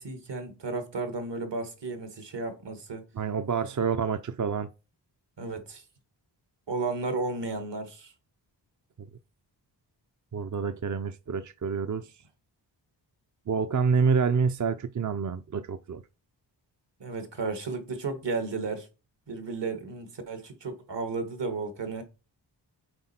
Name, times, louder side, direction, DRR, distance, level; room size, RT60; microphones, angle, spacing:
voice 1, 0.0-3.0 5.4-5.8 6.7-8.1 17.0-18.9 19.3-22.0, right 3 dB, 65° right, 1.8 m, -33 dB
voice 2, 3.2-4.7 9.0-9.1 10.3-12.1 13.5-16.0, right 5 dB, 40° right, 0.6 m, -27 dB
7.8 x 4.4 x 4.3 m
cardioid pair, 65°, 45 cm